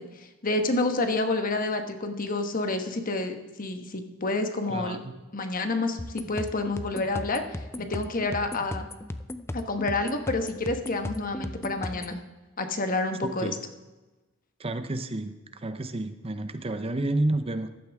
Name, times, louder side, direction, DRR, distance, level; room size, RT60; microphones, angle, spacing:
voice 1, 0.0-5.0 5.3-6.0 6.3-8.9 9.5-12.2 12.6-13.6, left 2 dB, 40° left, 6 dB, 1.2 m, -29 dB
voice 2, 4.7-5.1 13.2-13.5 14.6-17.7, right 2 dB, 30° right, 10 dB, 0.6 m, -30 dB
sound 1, 6.0-12.2, left 1 dB, 10° left, 0.5 m, -36 dB
14.5 x 11.5 x 3.5 m, 1.1 s
head